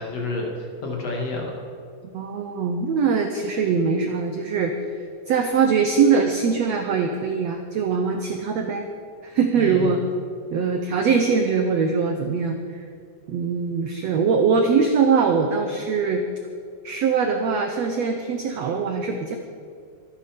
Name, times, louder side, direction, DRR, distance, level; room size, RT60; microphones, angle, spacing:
voice 1, 0.0-1.5 9.6-10.1, left 2 dB, 45° left, 0 dB, 3.0 m, -29 dB
voice 2, 2.1-4.7 5.3-8.9 9.2-10.0 10.5-12.8 13.3-16.2 16.8-19.4, right 5 dB, 75° right, 5 dB, 1.6 m, -22 dB
25.0 x 9.8 x 5.2 m, 2.3 s
omnidirectional pair, 4.2 m